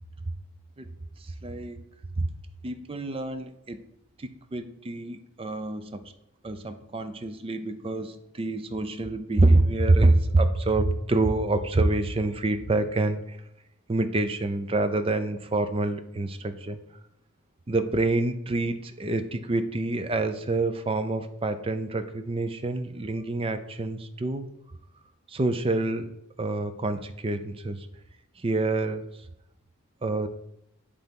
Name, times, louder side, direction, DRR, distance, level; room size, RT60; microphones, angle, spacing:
voice 1, 1.2-1.9 2.2-2.3 2.6-3.9 4.2-6.1 6.4-13.4 13.9-16.8 17.7-24.5 25.3-26.1 26.4-27.9 28.4-29.1 30.0-30.3, right 2 dB, 25° right, 9 dB, 0.4 m, -26 dB
7.9 x 3.3 x 5.2 m, 0.81 s
head